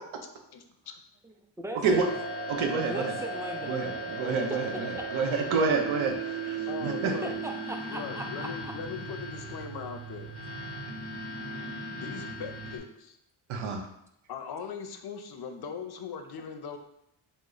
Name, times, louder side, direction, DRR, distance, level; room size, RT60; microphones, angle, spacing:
voice 1, 1.2-2.1 2.8-3.8 4.5-4.6 7.2-8.7 9.4-9.5, right 1 dB, 5° right, 2 dB, 0.4 m, -38 dB
sound 1, 1.8-12.8, right 2 dB, 55° right, 0.8 m, -37 dB
voice 2, 2.5-3.2 3.7-6.1 6.5-7.2 13.5-13.8, right 5 dB, 85° right, 3 dB, 0.6 m, -28 dB
voice 3, 6.7-7.3 7.9-10.3 11.9-13.2 14.3-16.8, left 6 dB, 55° left, 6 dB, 0.5 m, -39 dB
3.0 x 2.0 x 3.7 m, 0.79 s
cardioid pair, 55°, 47 cm